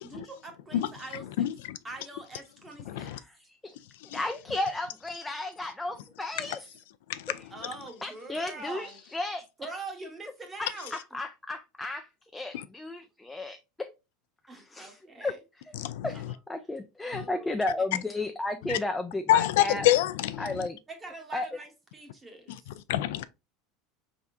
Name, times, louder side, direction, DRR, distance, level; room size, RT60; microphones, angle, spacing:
voice 1, 0.0-1.5 1.8-3.1 7.5-9.0 9.6-10.9 14.5-15.4 16.1-16.2 17.0-18.0 20.9-22.7, right 3 dB, 15° right, 1.0 m, -43 dB
voice 2, 1.4-1.8 2.9-3.2 4.1-4.2 6.4-6.6 7.1-7.4 12.5-12.6 15.8-16.1 17.1-17.2 18.6-18.8 19.3-20.7 22.9-23.2, left 13 dB, 80° left, 0.4 m, -27 dB
voice 3, 4.1-6.6 8.0-9.4 10.6-12.1 12.3-13.9 14.5-15.4 15.7-15.8 16.0-16.2 16.5-19.9 20.4-20.8 21.3-21.5, left 2 dB, 5° left, 0.3 m, -33 dB
4.6 x 3.5 x 2.6 m
supercardioid pair, 150°, 0 cm